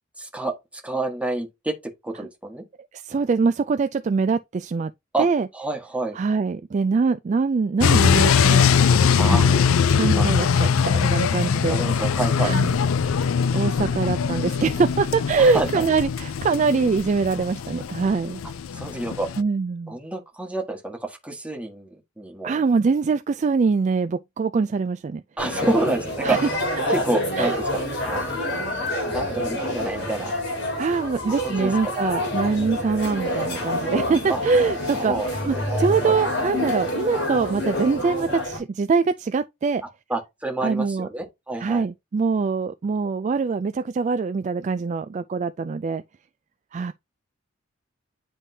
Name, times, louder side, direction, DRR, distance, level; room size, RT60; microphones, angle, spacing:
voice 1, 0.2-0.5 0.8-2.6 5.1-5.3 5.5-6.2 9.2-9.5 10.1-10.3 11.7-12.6 15.4-15.8 18.7-19.3 19.9-22.6 25.4-26.4 26.9-28.4 29.0-30.3 31.4-31.9 34.3-34.4 34.9-36.1 40.1-41.9, right 2 dB, 5° right, 1.5 m, -28 dB
voice 2, 2.9-4.9 5.2-5.5 6.2-8.7 9.3-9.6 9.9-11.8 12.4-12.8 13.5-18.4 19.4-20.0 22.4-25.2 26.2-26.4 27.4-27.6 30.8-35.1 35.4-39.8 40.6-41.1 41.6-46.0 46.7-46.9, right 4 dB, 35° right, 0.3 m, -23 dB
sound 1, 7.8-19.4, left 6 dB, 85° left, 0.4 m, -21 dB
sound 2, 25.4-38.6, left 1 dB, 55° left, 3.5 m, -27 dB
9.9 x 3.5 x 2.7 m
head